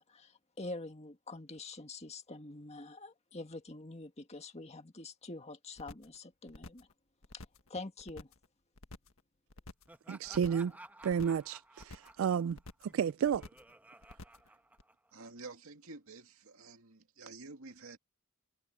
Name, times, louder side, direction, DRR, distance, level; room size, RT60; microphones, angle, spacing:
voice 1, 0.0-6.9 7.3-7.4 7.7-8.3, left 2 dB, 30° left, 1.8 m, -46 dB
sound 1, 5.8-6.2 6.5-6.9 7.2-7.7 8.0-8.5 8.8-9.2 9.5-10.0 10.3-10.7 11.0-11.5 11.8-12.2 12.5-13.0 13.3-13.7 14.0-14.5 14.8-14.9, left 2 dB, 75° left, 1.6 m, -50 dB
Laughter, 9.9-15.3, right 1 dB, 10° right, 1.3 m, -55 dB
voice 2, 10.1-10.7 11.0-13.5, right 7 dB, 70° right, 0.3 m, -32 dB
voice 3, 15.1-18.0, right 3 dB, 85° right, 2.3 m, -50 dB
head